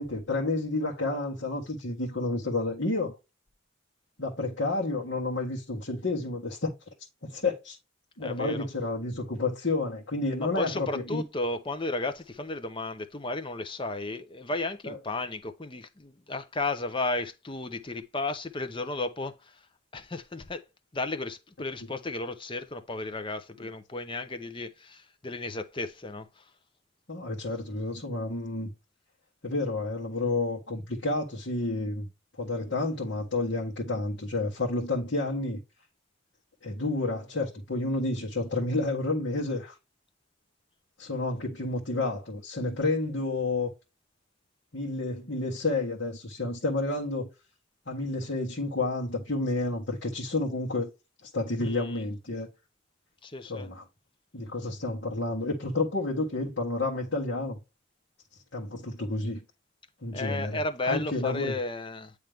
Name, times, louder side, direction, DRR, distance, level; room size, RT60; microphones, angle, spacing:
voice 1, 0.0-3.1 4.2-6.7 7.2-7.8 8.2-11.2 14.8-15.0 27.1-28.7 29.4-32.1 32.4-35.6 36.6-39.8 41.0-43.7 44.7-47.3 47.9-50.9 51.2-52.5 53.5-53.8 54.3-57.6 58.5-59.4 60.0-61.5, left 2 dB, 60° left, 1.6 m, -30 dB
voice 2, 8.2-8.6 10.4-19.6 19.9-20.6 20.9-26.4 51.6-52.0 53.2-53.7 60.1-62.1, left 2 dB, 25° left, 0.6 m, -34 dB
9.0 x 3.2 x 3.4 m
head